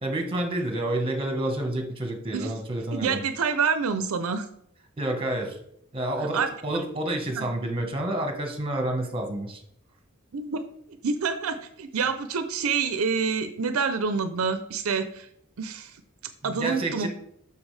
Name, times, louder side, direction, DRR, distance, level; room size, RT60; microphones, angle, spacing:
voice 1, 0.0-3.2 5.0-5.6 5.9-9.6 16.4-17.1, right 1 dB, 25° right, 3 dB, 1.3 m, -29 dB
voice 2, 2.9-4.4 6.3-6.5 7.3-7.5 10.3-10.7 11.0-15.3 15.6-15.9 16.4-17.1, right 5 dB, 80° right, 10 dB, 0.6 m, -27 dB
7.2 x 6.0 x 3.3 m, 0.71 s
head